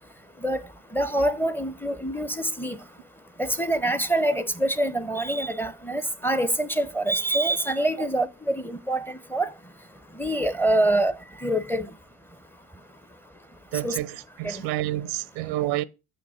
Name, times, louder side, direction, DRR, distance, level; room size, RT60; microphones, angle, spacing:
voice 1, 0.9-2.8 3.4-9.5 10.2-11.1 11.4-11.9 13.8-14.0 14.4-14.6, right 1 dB, 5° left, 0.6 m, -25 dB
voice 2, 13.7-15.8, right 15 dB, 90° right, 0.6 m, -29 dB
7.0 x 5.2 x 5.6 m
cardioid pair, 95°, 37 cm